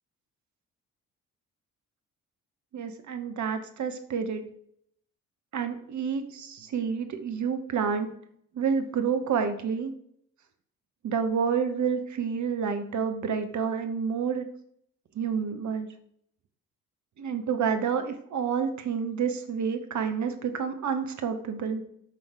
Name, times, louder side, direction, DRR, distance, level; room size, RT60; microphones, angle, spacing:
voice 1, 2.7-4.4 5.5-8.1 8.5-9.9 11.0-14.4 15.1-15.9 17.2-21.8, right 6 dB, 40° right, 7 dB, 1.0 m, -29 dB
8.3 x 5.4 x 3.4 m, 0.67 s
figure-of-eight pair, 40°, 42 cm